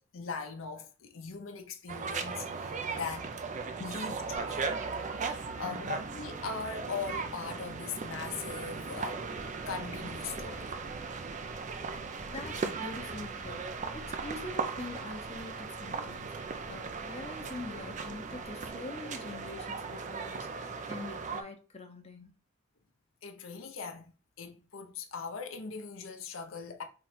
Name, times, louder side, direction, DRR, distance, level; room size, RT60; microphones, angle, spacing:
voice 1, 0.0-3.3 3.8-4.7 5.2-9.2 9.7-10.7 23.2-24.1 24.4-26.8, left 5 dB, 80° left, 0.7 m, -40 dB
sound 1, 1.9-21.4, right 4 dB, 35° right, 0.5 m, -38 dB
Guitar, 4.3-6.8 10.7-10.8, right 1 dB, 90° right, 1.5 m, -52 dB
voice 2, 5.5-5.9 12.3-16.3 16.6-22.3, left 2 dB, 30° left, 0.7 m, -44 dB
sound 2, 9.3-18.7, equal, 60° right, 1.6 m, -53 dB
3.7 x 3.1 x 4.3 m
head